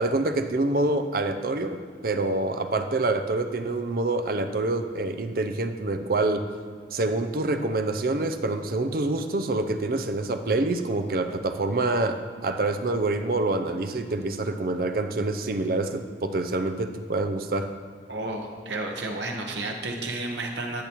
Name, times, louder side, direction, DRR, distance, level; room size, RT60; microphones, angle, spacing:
voice 1, 0.0-6.4 6.9-17.7, right 2 dB, 55° right, 8 dB, 0.5 m, -26 dB
voice 2, 18.1-20.8, right 2 dB, 80° right, 2 dB, 1.1 m, -31 dB
12.0 x 7.0 x 3.0 m, 2.1 s
head